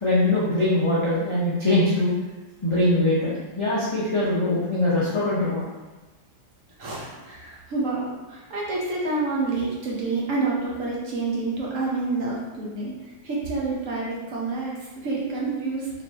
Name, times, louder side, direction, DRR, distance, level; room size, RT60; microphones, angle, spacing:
voice 1, 0.0-2.1 2.6-5.7, left 1 dB, 45° left, -9 dB, 0.4 m, -22 dB
voice 2, 6.8-15.9, right 3 dB, 55° right, -5 dB, 1.0 m, -28 dB
3.8 x 3.2 x 2.8 m, 1.2 s
omnidirectional pair, 1.8 m